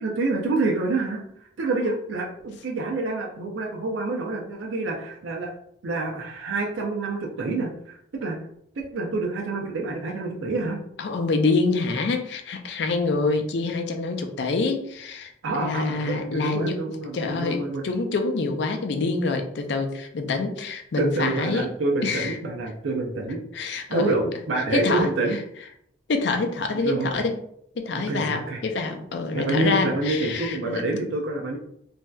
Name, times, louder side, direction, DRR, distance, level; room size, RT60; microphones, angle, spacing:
voice 1, 0.0-1.2 1.6-5.5 5.8-8.4 8.8-10.8 15.4-17.8 21.0-23.4 23.9-25.4 26.7-27.2 27.9-28.6 29.3-31.6, right 2 dB, 85° right, 0 dB, 0.5 m, -27 dB
voice 2, 11.0-16.8 17.1-21.7 22.0-22.4 23.5-24.1 24.7-25.1 26.1-27.4 27.8-30.8, left 3 dB, 65° left, 5 dB, 0.4 m, -26 dB
3.2 x 2.6 x 2.2 m, 0.72 s
head